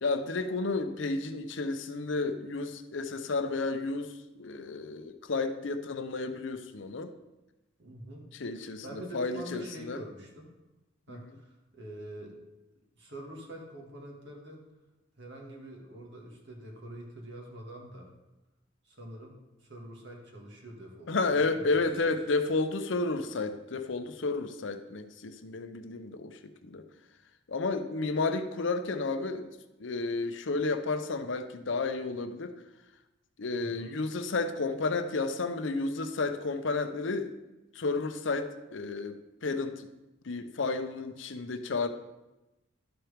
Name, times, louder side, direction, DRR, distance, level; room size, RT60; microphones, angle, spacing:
voice 1, 0.0-7.1 8.3-10.0 11.1-11.4 21.1-26.8 27.5-29.5 29.8-32.5 33.4-37.3 37.7-39.9 40.2-41.9, left 3 dB, 65° left, 8 dB, 0.7 m, -32 dB
voice 2, 7.8-8.3 8.8-10.5 11.1-12.4 13.0-14.6 15.2-18.1 18.8-21.1 21.4-21.8 33.6-33.9, right 1 dB, 60° right, 0 dB, 2.0 m, -45 dB
12.0 x 4.5 x 5.0 m, 1.0 s
head